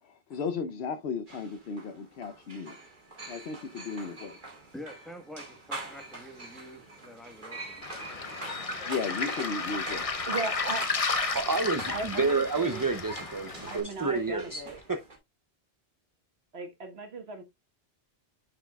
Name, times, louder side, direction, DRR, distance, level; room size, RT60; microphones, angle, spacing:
voice 1, 0.0-2.8 3.3-4.4 8.9-10.1, left 5 dB, 70° left, 1.0 m, -35 dB
sound 1, 1.3-15.2, right 2 dB, 50° right, 2.2 m, -45 dB
voice 2, 4.7-7.9 8.1-8.8, equal, ahead, 1.2 m, -48 dB
Waves surf, 7.8-13.8, left 4 dB, 35° left, 0.8 m, -33 dB
voice 3, 9.9-10.9 11.9-12.9 13.6-14.8 16.5-17.4, right 3 dB, 70° right, 1.5 m, -37 dB
voice 4, 11.3-14.6, right 4 dB, 25° right, 0.4 m, -29 dB
10.0 x 4.8 x 2.3 m
omnidirectional pair, 1.1 m